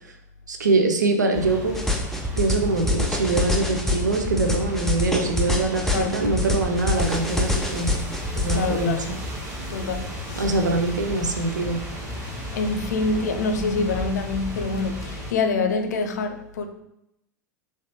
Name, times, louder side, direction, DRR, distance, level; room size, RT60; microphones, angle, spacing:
voice 1, 0.5-1.8 2.4-8.0 8.4-9.0 10.4-11.8, right 3 dB, 80° right, 4 dB, 0.4 m, -23 dB
sound 1, 1.3-15.3, equal, 30° right, 1.2 m, -34 dB
sound 2, 1.7-8.6, left 2 dB, 5° left, 0.5 m, -25 dB
voice 2, 5.9-6.3 8.5-9.1 9.7-10.7 12.5-16.7, left 3 dB, 70° left, 6 dB, 0.4 m, -26 dB
3.2 x 2.8 x 2.8 m, 0.83 s
figure-of-eight pair, 85°, 10 cm